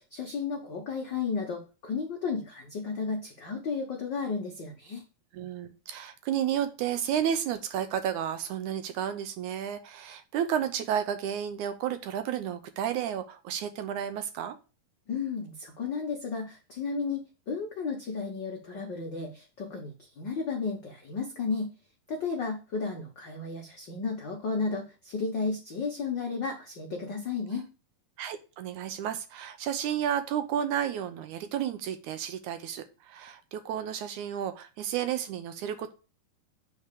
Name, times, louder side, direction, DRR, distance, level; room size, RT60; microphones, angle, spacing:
voice 1, 0.0-5.0 15.1-21.7 22.1-27.7, left 4 dB, 80° left, 1 dB, 1.0 m, -33 dB
voice 2, 5.3-14.6 28.2-35.9, right 9 dB, 75° right, 9 dB, 2.0 m, -32 dB
8.2 x 4.4 x 6.7 m, 0.33 s
omnidirectional pair, 3.9 m